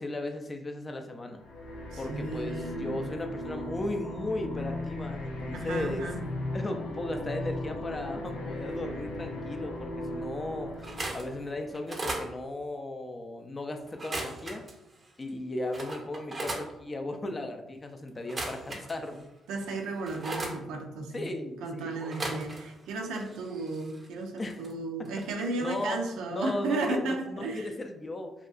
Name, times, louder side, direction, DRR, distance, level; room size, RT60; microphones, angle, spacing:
voice 1, 0.0-1.4 2.0-6.1 6.5-14.6 15.2-19.3 21.1-22.0 24.4-24.6 25.0-25.1 25.6-26.0 26.3-28.3, left 2 dB, 25° left, 5 dB, 0.3 m, -36 dB
sound 1, 1.4-11.9, left 1 dB, 85° left, 0.5 m, -37 dB
voice 2, 1.9-3.0 5.5-6.2 19.5-21.3 21.6-27.7, right 3 dB, 90° right, 2 dB, 0.4 m, -34 dB
sound 2, 10.8-11.3 11.7-12.3 13.9-14.7 15.3-15.4 15.7-16.7 18.2-19.2 19.6-20.6 22.0-22.8 23.1-24.7 25.1-25.3 25.5-25.7, right 2 dB, 30° right, 0.5 m, -37 dB
2.7 x 2.3 x 2.3 m, 0.94 s
cardioid pair, 90°, 0 cm